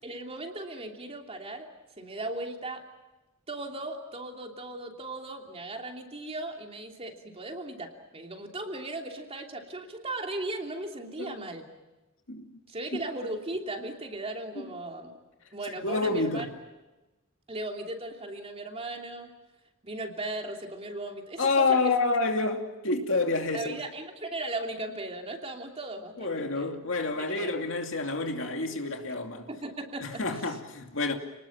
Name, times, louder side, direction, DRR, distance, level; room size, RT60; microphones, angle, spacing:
voice 1, 0.0-1.7 2.0-2.8 3.5-11.7 12.7-15.1 15.5-16.5 17.5-19.3 19.8-21.9 23.5-26.8 27.3-27.5 29.5-30.6, right 2 dB, 30° right, 3.0 m, -37 dB
voice 2, 15.8-16.5 21.4-23.8 26.2-29.5 30.0-31.1, left 3 dB, 70° left, 2.6 m, -28 dB
29.0 x 20.0 x 7.4 m
head